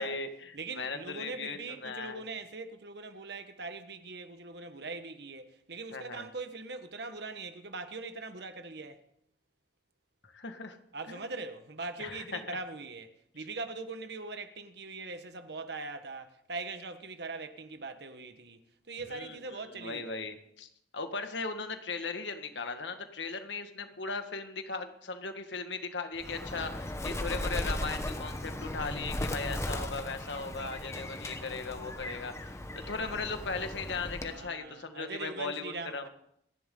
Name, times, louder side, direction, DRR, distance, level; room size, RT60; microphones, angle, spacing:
voice 1, 0.0-2.2 5.9-6.3 10.2-10.8 11.1-11.2 12.0-12.6 19.1-36.1, left 4 dB, 85° left, 1.8 m, -38 dB
voice 2, 0.5-9.0 10.9-18.6 18.9-20.2 32.8-33.0 34.2-36.1, right 3 dB, 65° right, 1.4 m, -41 dB
Bird, 26.2-34.5, left 1 dB, 15° left, 1.1 m, -37 dB
27.0 x 11.0 x 3.9 m
head